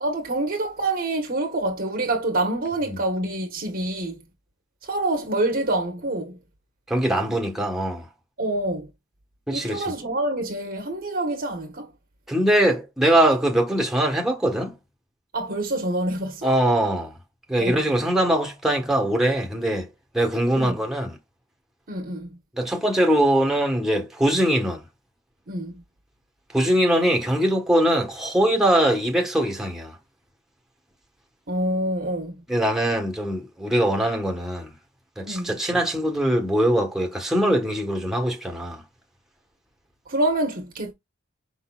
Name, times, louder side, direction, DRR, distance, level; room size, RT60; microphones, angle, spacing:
voice 1, 0.0-4.2 4.8-6.4 8.4-8.9 9.5-11.9 15.3-16.5 17.6-17.8 20.5-20.7 21.9-22.4 25.5-25.8 31.5-32.4 35.2-35.6 40.1-40.9, right 1 dB, 45° right, 1.1 m, -26 dB
voice 2, 6.9-8.1 9.5-9.8 12.3-14.7 16.4-17.1 17.5-19.9 20.1-21.2 22.6-24.8 26.5-29.9 32.5-34.7 35.2-38.8, right 1 dB, ahead, 1.2 m, -22 dB
5.3 x 3.9 x 2.3 m
head